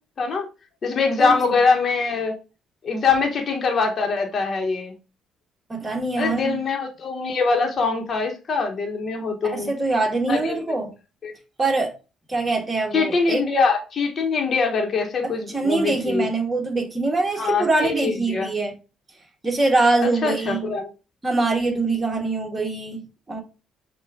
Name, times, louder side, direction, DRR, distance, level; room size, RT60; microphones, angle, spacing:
voice 1, 0.8-2.3 2.8-4.9 6.2-9.7 10.3-10.6 11.2-11.3 12.9-16.3 17.4-18.5 20.2-20.9, left 4 dB, 45° left, 1.2 m, -23 dB
voice 2, 5.7-6.6 9.4-10.9 11.6-11.9 12.3-13.4 15.2-18.7 19.4-20.7 21.2-23.4, right 3 dB, 20° right, 1.6 m, -23 dB
5.6 x 2.5 x 3.5 m
hypercardioid pair, 60°, 0 cm